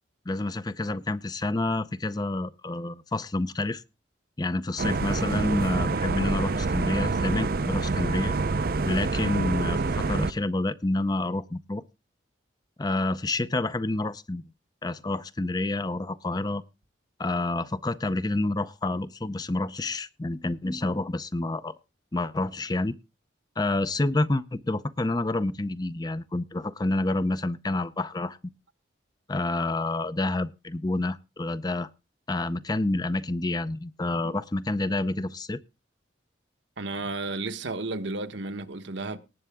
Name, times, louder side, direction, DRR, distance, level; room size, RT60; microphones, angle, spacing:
voice 1, 0.3-3.8 4.4-8.3 8.9-11.8 12.8-14.4 14.8-16.6 17.2-21.7 22.1-22.9 23.6-28.4 29.3-31.9 32.3-35.6, left 2 dB, 20° left, 0.5 m, -28 dB
sound 1, 4.8-10.3, right 3 dB, 50° right, 0.6 m, -27 dB
voice 2, 36.8-39.2, right 3 dB, 70° right, 1.2 m, -33 dB
19.0 x 7.9 x 3.6 m
head